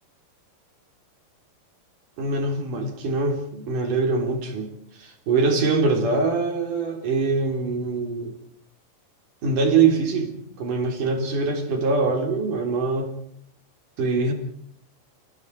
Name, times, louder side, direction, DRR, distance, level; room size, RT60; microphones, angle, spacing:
voice 1, 2.2-4.7 5.0-8.3 9.4-13.1 14.0-14.3, right 4 dB, 50° right, 4 dB, 5.1 m, -23 dB
28.5 x 22.0 x 4.9 m, 0.65 s
omnidirectional pair, 5.0 m